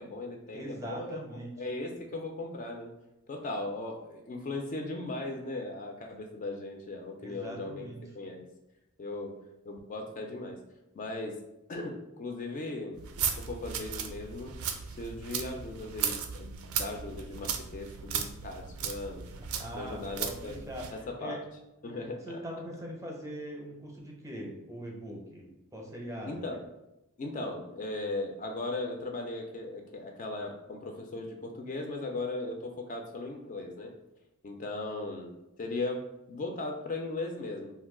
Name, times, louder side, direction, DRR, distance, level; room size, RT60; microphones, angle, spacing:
voice 1, 0.0-1.2 1.6-2.9 3.3-7.9 8.1-8.5 9.0-9.4 9.7-10.6 10.9-11.4 11.7-13.0 13.4-14.6 14.9-19.3 19.7-20.6 20.9-21.4 21.8-22.4 26.2-26.7 27.2-33.9 34.4-37.7, left 2 dB, 35° left, 2 dB, 0.3 m, -38 dB
voice 2, 0.5-1.5 7.2-8.0 19.4-20.9 21.2-21.4 22.3-26.5, equal, 15° right, -1 dB, 0.5 m, -41 dB
sound 1, 13.0-21.0, right 7 dB, 85° right, 0.4 m, -36 dB
2.5 x 2.2 x 3.6 m, 0.90 s
head